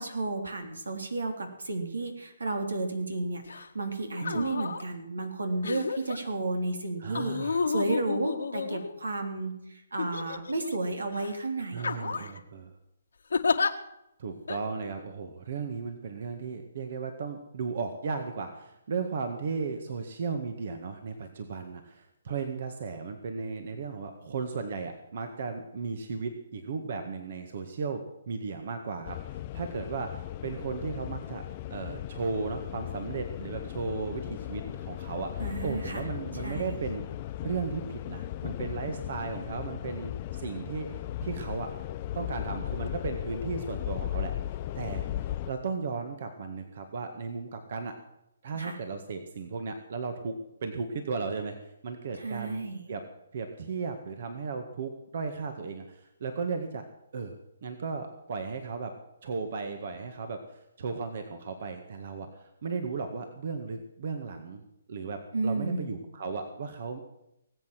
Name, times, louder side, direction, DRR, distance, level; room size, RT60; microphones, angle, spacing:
voice 1, 0.0-12.3 35.4-36.0 36.4-36.8 48.5-48.8 52.2-52.9 65.3-66.0, right 2 dB, 90° right, 5 dB, 3.4 m, -32 dB
sound 1, 3.5-3.7 4.2-4.8 5.6-6.2 7.1-9.2 10.0-10.7 11.1-11.3 11.8-12.4 13.3-13.7 14.5-14.6, left 5 dB, 80° left, 1.6 m, -31 dB
voice 2, 7.0-7.6 11.7-12.7 14.2-31.4 31.7-37.1 37.4-40.9 41.2-41.7 42.2-44.3 44.8-47.9 48.4-52.6 52.9-53.0 53.3-56.8 57.1-57.3 57.6-58.9 59.2-64.6 64.9-67.0, right 5 dB, 55° right, 6 dB, 1.8 m, -35 dB
sound 2, 29.0-45.5, left 13 dB, 35° left, 0.6 m, -37 dB
19.5 x 8.3 x 7.7 m, 0.84 s
hypercardioid pair, 145°, 0 cm